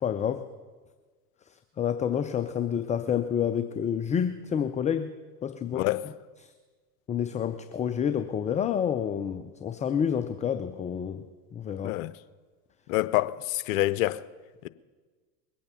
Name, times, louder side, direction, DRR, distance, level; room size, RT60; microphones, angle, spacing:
voice 1, 0.0-0.4 1.8-5.1 5.4-5.9 7.1-11.2 11.5-12.0, left 8 dB, 15° left, 0.4 m, -28 dB
voice 2, 12.9-14.2, left 16 dB, 60° left, 0.8 m, -26 dB
21.5 x 8.5 x 6.9 m
hypercardioid pair, 95°, 47 cm